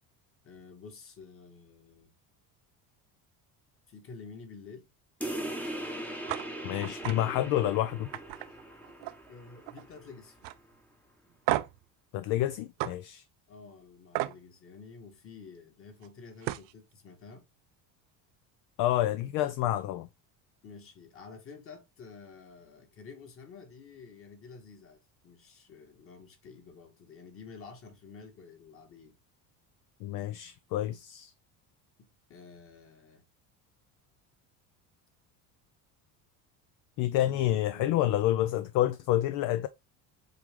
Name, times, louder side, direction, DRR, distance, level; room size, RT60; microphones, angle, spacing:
voice 1, 0.4-2.1 3.9-4.9 9.3-10.4 13.5-17.5 20.6-29.2 32.0-33.2 37.2-38.1, left 4 dB, 30° left, 1.8 m, -50 dB
sound 1, 5.2-10.3, right 1 dB, 5° left, 0.9 m, -40 dB
sound 2, 6.3-6.4 6.8-7.2 7.6-7.7 8.1-9.3 9.6-10.0 10.4-10.6 11.5-11.8 12.8-12.9 14.1-14.4 16.0-16.1 16.4-16.7, right 17 dB, 85° right, 0.7 m, -33 dB
voice 2, 6.6-8.1 12.1-13.2 18.8-20.1 30.0-31.3 37.0-39.7, left 13 dB, 50° left, 0.5 m, -28 dB
7.7 x 3.6 x 3.6 m
cardioid pair, 175°, 43 cm